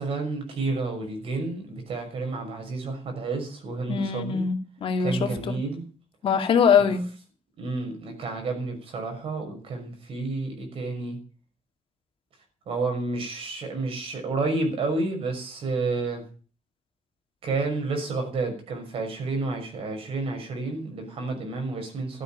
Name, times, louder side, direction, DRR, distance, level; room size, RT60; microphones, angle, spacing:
voice 1, 0.0-4.5 5.0-5.8 6.8-6.9 7.6-11.2 12.7-16.2 17.4-22.2, right 3 dB, 55° right, 6.0 m, -30 dB
voice 2, 3.9-5.5 6.2-7.0, left 6 dB, 55° left, 2.3 m, -22 dB
13.0 x 8.5 x 8.9 m
cardioid pair, 150°, 11 cm